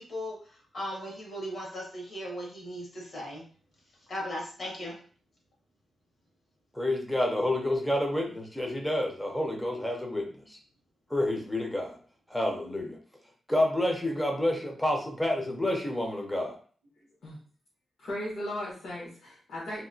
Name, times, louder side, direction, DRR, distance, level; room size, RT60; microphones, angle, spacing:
voice 1, 0.0-3.4 4.1-5.0, equal, 45° left, -2 dB, 1.0 m, -37 dB
voice 2, 6.7-10.6 11.1-12.0 12.3-13.0 13.5-16.6, left 1 dB, 5° left, 1 dB, 0.6 m, -29 dB
voice 3, 18.0-19.8, left 1 dB, 65° left, -7 dB, 1.2 m, -36 dB
2.8 x 2.7 x 2.7 m, 0.43 s
wide cardioid pair, 170°, 0 cm